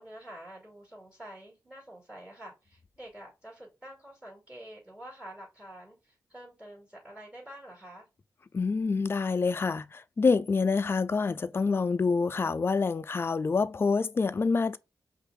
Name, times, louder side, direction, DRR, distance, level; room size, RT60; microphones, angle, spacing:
voice 1, 0.0-8.1, right 1 dB, 15° right, 2.4 m, -47 dB
voice 2, 8.5-14.8, left 4 dB, 35° left, 0.3 m, -27 dB
5.4 x 2.5 x 3.7 m
wide cardioid pair, 90°, 7 cm